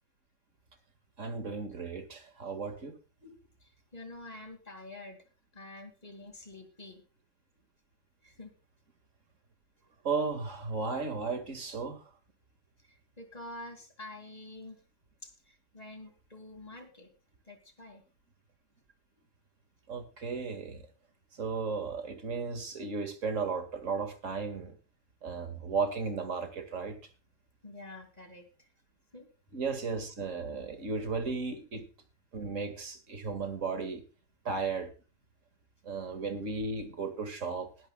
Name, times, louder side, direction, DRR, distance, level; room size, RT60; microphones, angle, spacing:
voice 1, 1.2-3.0 3.2-3.4 10.0-12.1 19.9-20.8 21.3-24.8 25.2-27.0 29.5-31.9 32.3-34.0 34.4-34.9 35.8-37.7, right 4 dB, 90° right, 9 dB, 2.4 m, -35 dB
voice 2, 3.6-5.2 5.5-7.0 8.2-8.5 12.8-14.8 15.2-17.1 17.5-18.0 27.6-28.7 29.1-29.3, left 2 dB, 30° left, 6 dB, 2.6 m, -47 dB
20.0 x 10.5 x 2.3 m, 0.33 s
omnidirectional pair, 1.3 m